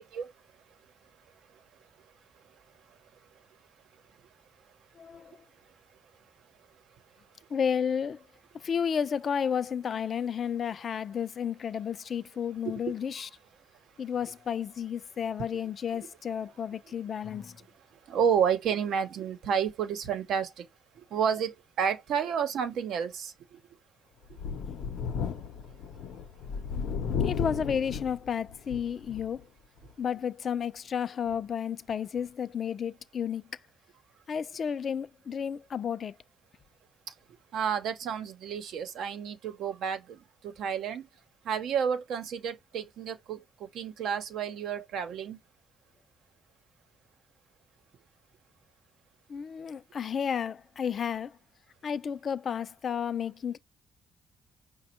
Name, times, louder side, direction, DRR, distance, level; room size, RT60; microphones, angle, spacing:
voice 1, 5.0-5.4 7.5-8.2 8.5-13.3 14.0-17.6 27.2-29.5 30.0-33.5 34.3-36.2 49.3-51.4 51.8-53.6, left 7 dB, 50° left, 0.4 m, -32 dB
voice 2, 18.1-20.6 21.1-23.3 24.5-24.6 37.5-40.2 40.4-41.0 41.5-43.4 43.7-45.4, right 7 dB, 75° right, 0.8 m, -30 dB
Thunder, 24.3-29.4 29.8-29.9 31.3-31.4, left 6 dB, 85° left, 0.7 m, -34 dB
5.2 x 2.2 x 4.3 m
cardioid pair, 90°, 0 cm